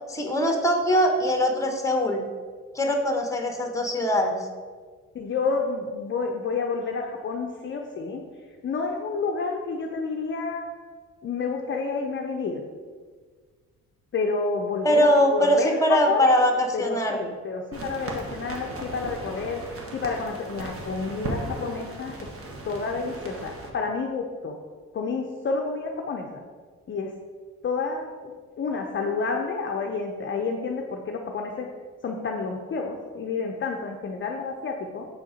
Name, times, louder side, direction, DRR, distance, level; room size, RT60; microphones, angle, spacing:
voice 1, 0.1-2.2 2.7-4.3 14.8-17.2, equal, 10° left, 3 dB, 1.0 m, -22 dB
voice 2, 5.1-8.2 8.6-10.6 11.2-12.6 14.1-16.3 16.7-19.6 19.9-22.3 22.6-24.6 24.9-26.3 26.9-27.1 27.6-31.7 32.0-35.0, left 4 dB, 40° left, 2 dB, 0.6 m, -29 dB
sound 1, 17.7-23.7, right 2 dB, 50° right, 1.2 m, -37 dB
6.4 x 3.8 x 5.0 m, 1.5 s
cardioid pair, 90°, 30 cm